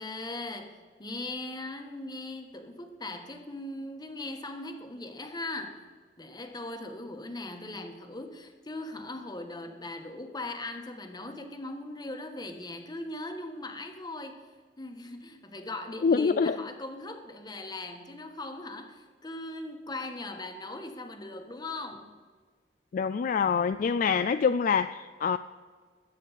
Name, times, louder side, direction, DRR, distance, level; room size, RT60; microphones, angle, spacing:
voice 1, 0.0-5.8 6.2-14.5 14.8-22.1, left 2 dB, 25° left, 1.3 m, -39 dB
voice 2, 16.0-16.6 22.9-25.4, left 6 dB, 50° left, 0.3 m, -25 dB
21.0 x 8.4 x 4.1 m
head